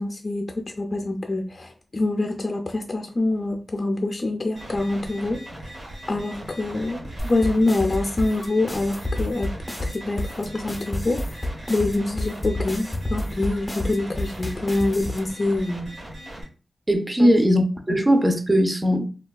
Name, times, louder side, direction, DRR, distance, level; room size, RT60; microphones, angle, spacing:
voice 1, 0.0-5.7 6.1-9.5 9.8-15.9 17.2-17.4, left 2 dB, 45° left, 0.5 m, -25 dB
sound 1, 4.6-16.4, right 1 dB, 60° right, 1.3 m, -39 dB
sound 2, 7.2-15.2, left 1 dB, 15° left, 0.7 m, -30 dB
voice 2, 16.9-19.1, equal, 25° right, 0.6 m, -19 dB
3.2 x 2.2 x 2.3 m
wide cardioid pair, 75°, 0 cm